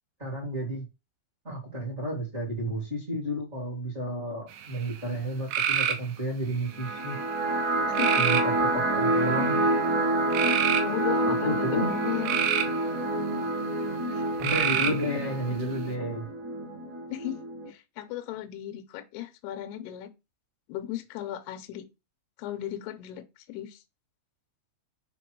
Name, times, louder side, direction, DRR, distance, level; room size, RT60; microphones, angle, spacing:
voice 1, 0.2-0.8 1.4-7.1 8.2-9.6 11.3-12.0 14.4-16.3, equal, 20° right, 1.8 m, -32 dB
sound 1, 4.5-5.0 5.5-6.1 6.7-7.2 8.0-8.5 9.2-9.6 10.3-10.8 11.9-12.8 14.4-15.1, right 9 dB, 75° right, 3.0 m, -26 dB
sound 2, 6.7-17.7, right 2 dB, 50° right, 3.0 m, -28 dB
voice 2, 7.9-8.2 10.8-12.4 14.1-14.2 17.1-17.4 17.7-20.1 20.7-21.9 22.4-23.8, left 13 dB, 75° left, 2.5 m, -35 dB
7.0 x 3.6 x 4.7 m
omnidirectional pair, 5.5 m